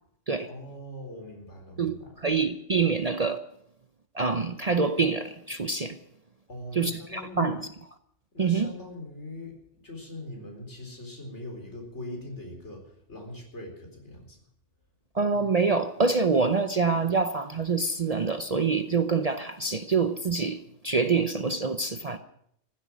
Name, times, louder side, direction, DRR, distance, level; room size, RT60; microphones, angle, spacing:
voice 1, 0.5-2.2 6.5-7.6 8.3-14.4, left 1 dB, 70° left, 4.5 m, -41 dB
voice 2, 1.8-3.4 4.1-6.0 6.8-7.7 8.4-8.7 15.1-22.2, right 4 dB, 40° right, 0.7 m, -26 dB
15.0 x 12.5 x 6.2 m
omnidirectional pair, 1.2 m